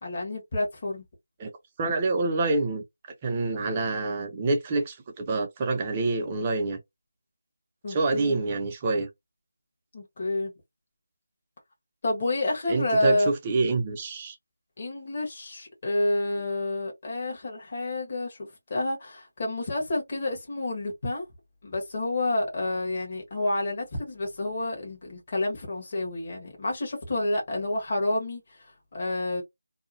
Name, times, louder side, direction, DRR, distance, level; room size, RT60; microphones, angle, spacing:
voice 1, 0.0-1.0 7.8-8.4 9.9-10.5 12.0-13.3 14.8-21.2 21.6-29.4, left 2 dB, 35° left, 1.3 m, -29 dB
voice 2, 1.8-2.8 3.2-6.8 7.9-9.1 12.7-14.4, right 3 dB, 20° right, 0.7 m, -27 dB
2.8 x 2.3 x 2.6 m
figure-of-eight pair, 165°, 0 cm